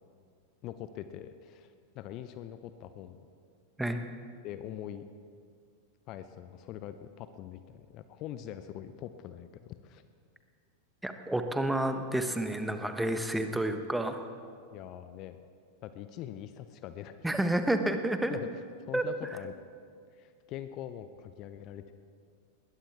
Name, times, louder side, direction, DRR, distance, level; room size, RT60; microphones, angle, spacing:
voice 1, 0.6-3.2 4.4-5.0 6.1-10.0 14.7-15.4 15.8-17.3 18.3-18.5 18.9-19.5 20.1-21.9, left 11 dB, 40° left, 11 dB, 0.7 m, -43 dB
voice 2, 11.0-14.2 17.2-18.4 18.9-19.0, right 1 dB, 5° right, 7 dB, 1.2 m, -30 dB
20.5 x 20.0 x 3.5 m, 2.2 s
figure-of-eight pair, 90°, 0 cm